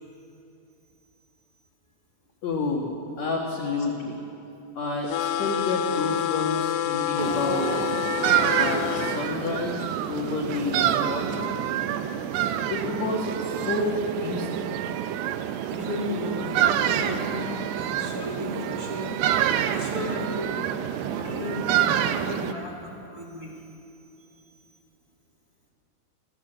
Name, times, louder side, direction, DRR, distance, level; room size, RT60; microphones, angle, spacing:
voice 1, 2.4-4.2 4.8-7.7 8.5-11.5 12.7-14.7, left 3 dB, 60° left, -1 dB, 1.9 m, -29 dB
sound 1, 5.1-9.2, left 12 dB, 90° left, 3.5 m, -28 dB
sound 2, 7.2-22.5, right 10 dB, 80° right, 2.4 m, -27 dB
voice 2, 15.7-19.2 19.7-20.6 20.9-23.5, left 2 dB, 20° right, -3 dB, 3.5 m, -34 dB
28.5 x 17.0 x 8.0 m, 2.9 s
omnidirectional pair, 5.8 m